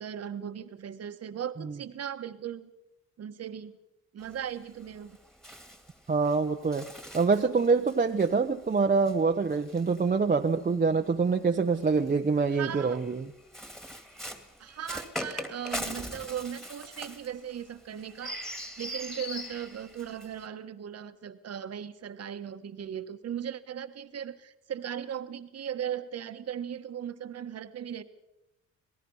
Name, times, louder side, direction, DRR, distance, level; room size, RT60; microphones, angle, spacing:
voice 1, 0.0-2.7 3.2-3.8 4.1-5.2 12.5-13.0 14.6-28.0, right 9 dB, 55° right, 9 dB, 1.4 m, -38 dB
Bird, 4.2-10.7 11.7-20.5, equal, ahead, 2.3 m, -42 dB
voice 2, 6.1-6.9 7.1-13.3, right 4 dB, 30° right, 3 dB, 1.0 m, -25 dB
26.5 x 18.5 x 5.6 m, 0.94 s
cardioid pair, 90°, 30 cm